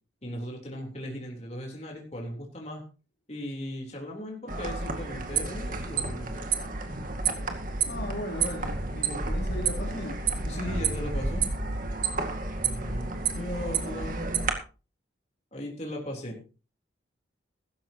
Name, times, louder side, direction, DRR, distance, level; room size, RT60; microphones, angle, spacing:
voice 1, 0.2-2.8 3.3-6.5 10.4-11.5 12.6-14.2 15.5-16.4, equal, 35° left, -1 dB, 3.7 m, -37 dB
sound 1, 4.5-14.5, right 4 dB, 45° right, 2.1 m, -30 dB
voice 2, 7.9-10.2, left 1 dB, 55° left, 1 dB, 3.7 m, -36 dB
15.5 x 13.5 x 3.0 m, 0.34 s
head